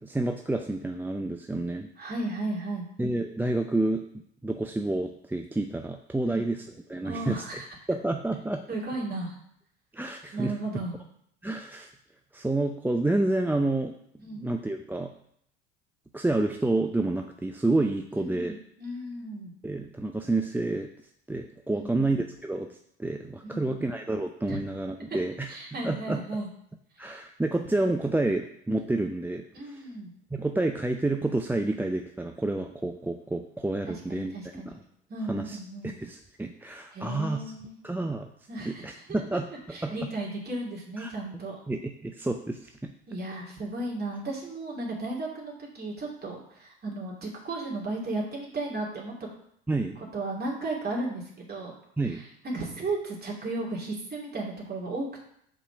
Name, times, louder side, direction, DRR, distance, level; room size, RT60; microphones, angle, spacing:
voice 1, 0.0-1.9 3.0-4.0 4.4-7.6 7.9-8.6 9.9-10.5 11.4-11.9 12.3-13.9 14.3-15.1 16.1-18.6 19.6-20.9 21.3-25.6 25.8-26.2 27.0-29.8 30.3-34.3 34.7-34.8 35.3-35.6 35.8-37.5 37.8-38.3 38.6-39.9 41.0-41.1 41.7-42.9 49.7-50.0 52.0-52.2, right 2 dB, 5° right, 4 dB, 0.6 m, -29 dB
voice 2, 2.0-2.9 6.2-6.5 7.0-7.7 8.7-9.4 10.3-10.9 14.2-14.5 18.1-19.5 21.7-22.0 23.4-23.8 24.5-24.6 25.1-25.2 25.5-26.5 29.5-30.1 33.9-34.8 35.1-35.9 36.9-37.8 38.5-39.2 39.7-41.6 43.1-49.3 50.1-51.7 52.1-55.3, right 2 dB, 30° right, -2 dB, 2.9 m, -35 dB
5.4 x 4.9 x 5.9 m, 0.69 s
hypercardioid pair, 65°, 33 cm